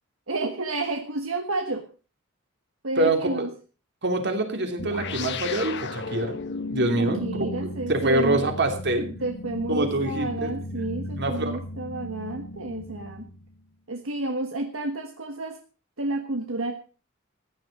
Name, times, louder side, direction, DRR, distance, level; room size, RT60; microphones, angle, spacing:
voice 1, 0.3-1.8 2.8-3.5 7.0-8.4 9.2-13.3 13.9-15.6 16.0-16.7, right 2 dB, 75° right, 5 dB, 1.4 m, -30 dB
voice 2, 3.0-3.5 4.0-6.3 6.7-9.1 9.7-10.5 11.2-11.5, right 1 dB, 55° right, 5 dB, 3.0 m, -25 dB
sound 1, 4.8-13.6, left 2 dB, 55° left, 1.2 m, -35 dB
15.0 x 10.5 x 5.3 m, 0.37 s
head